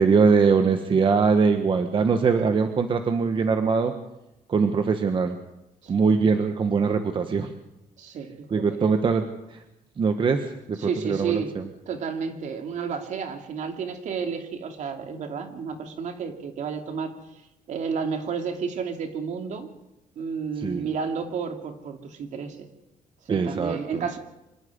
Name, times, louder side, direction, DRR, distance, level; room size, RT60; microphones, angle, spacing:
voice 1, 0.0-3.9 4.5-5.4 5.9-7.5 8.5-9.2 9.5-9.6 10.0-11.6 20.6-20.9 23.3-24.1, right 5 dB, 35° right, 7 dB, 1.4 m, -22 dB
voice 2, 8.0-8.8 10.8-11.5 11.9-17.1 17.7-19.7 20.2-22.7 23.3-24.2, right 6 dB, 60° right, 5 dB, 2.9 m, -31 dB
26.0 x 12.5 x 9.7 m, 0.93 s
cardioid pair, 145°, 14 cm